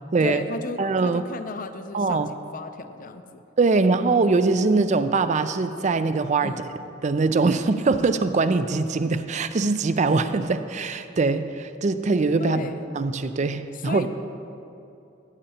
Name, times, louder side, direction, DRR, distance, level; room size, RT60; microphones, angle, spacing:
voice 1, 0.2-3.4 6.4-6.7 12.4-12.8 13.7-14.1, left 3 dB, 45° left, 9 dB, 0.5 m, -34 dB
voice 2, 0.8-1.2 1.9-2.3 3.6-6.5 7.0-14.1, right 3 dB, 35° right, 11 dB, 0.4 m, -22 dB
17.0 x 8.8 x 2.9 m, 2.7 s
head